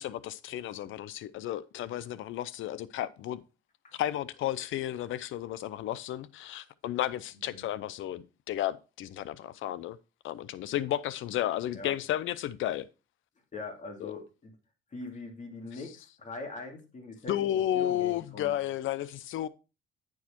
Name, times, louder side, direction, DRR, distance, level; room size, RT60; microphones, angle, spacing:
voice 1, 0.0-3.4 3.9-10.0 10.2-12.9 14.0-14.1 17.3-19.5, left 12 dB, 80° left, 0.6 m, -33 dB
voice 2, 13.5-14.5 14.9-18.5, left 3 dB, 40° left, 2.5 m, -42 dB
9.4 x 4.8 x 4.4 m
cardioid pair, 90°, 20 cm